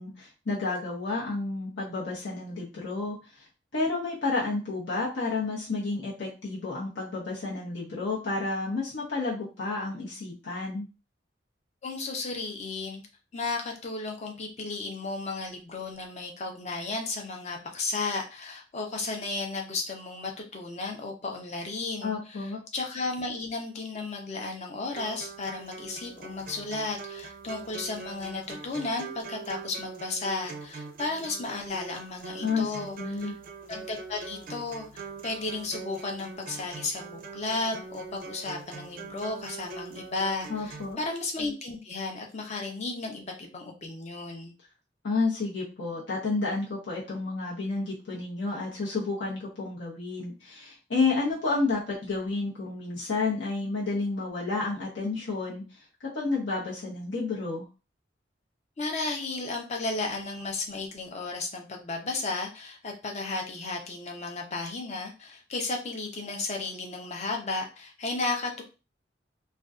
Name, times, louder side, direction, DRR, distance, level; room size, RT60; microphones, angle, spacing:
voice 1, 0.0-3.2 3.7-10.9 22.0-22.6 32.4-33.3 40.5-41.0 45.0-57.7, left 3 dB, 85° left, -6 dB, 0.8 m, -31 dB
voice 2, 11.8-13.0 13.3-33.3 33.7-44.5 58.8-68.6, left 3 dB, 40° left, 2 dB, 0.5 m, -34 dB
sound 1, 24.9-40.9, right 4 dB, 50° right, 0.4 m, -43 dB
2.5 x 2.2 x 2.3 m, 0.32 s
head